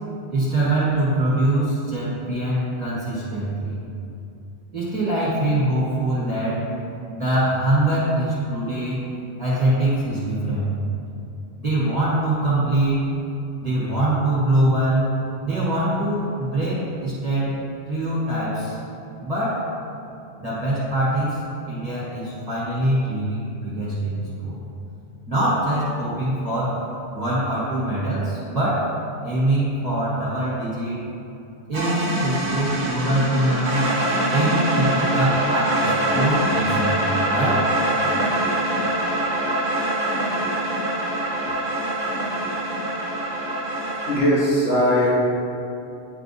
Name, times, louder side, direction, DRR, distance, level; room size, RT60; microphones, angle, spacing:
voice 1, 0.3-3.8 4.7-6.7 7.1-9.0 9.4-10.7 11.6-13.0 13.6-15.2 15.4-17.6 17.9-18.8 19.2-19.7 20.4-21.4 21.7-24.6 25.3-26.9 27.1-29.0 29.2-31.0 31.7-33.9 34.3-37.7, right 1 dB, 35° right, -10 dB, 1.6 m, -23 dB
sound 1, 31.7-44.2, right 1 dB, 55° right, 1.2 m, -24 dB
voice 2, 44.0-45.1, equal, 65° left, -10 dB, 1.9 m, -19 dB
10.5 x 3.5 x 4.1 m, 2.7 s
omnidirectional pair, 1.1 m